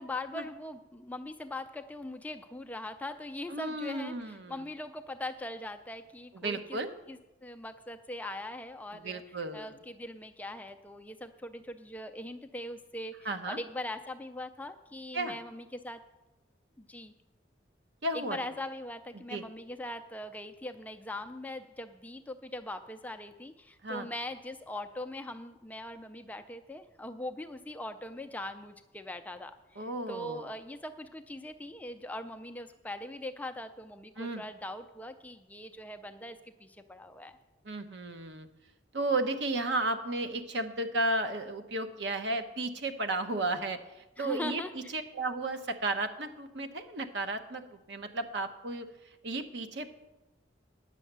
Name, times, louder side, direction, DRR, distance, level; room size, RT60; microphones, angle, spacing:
voice 1, 0.0-6.8 7.1-9.2 9.5-16.0 16.8-17.1 18.1-37.4 44.2-44.9, left 1 dB, 10° left, 7 dB, 0.4 m, -41 dB
voice 2, 3.5-4.6 6.3-6.9 8.9-9.7 13.2-13.6 15.1-15.4 18.0-18.4 19.3-19.4 23.8-24.1 29.8-30.5 34.2-34.4 37.6-38.5 38.9-44.6 44.9-48.9 49.2-49.9, right 2 dB, 65° right, 8 dB, 0.8 m, -33 dB
10.0 x 6.3 x 7.9 m, 1.0 s
head